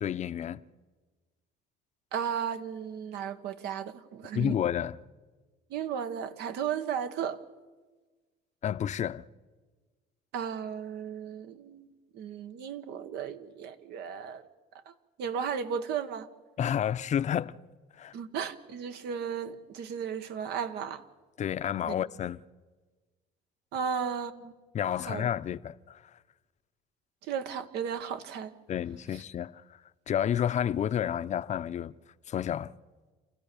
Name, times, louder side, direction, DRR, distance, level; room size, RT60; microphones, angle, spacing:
voice 1, 0.0-0.6 4.3-5.0 8.6-9.3 16.6-17.5 18.0-18.1 21.4-22.4 24.7-26.0 28.7-29.8 30.1-31.9 32.3-32.7, left 9 dB, 45° left, 0.6 m, -30 dB
voice 2, 2.1-4.5 5.7-7.4 10.3-14.4 14.9-15.0 15.2-16.3 18.1-21.0 21.9-22.0 23.7-24.5 25.1-25.3 27.3-28.5, right 7 dB, 80° right, 1.3 m, -35 dB
28.0 x 15.0 x 6.9 m
cardioid pair, 110°, 17 cm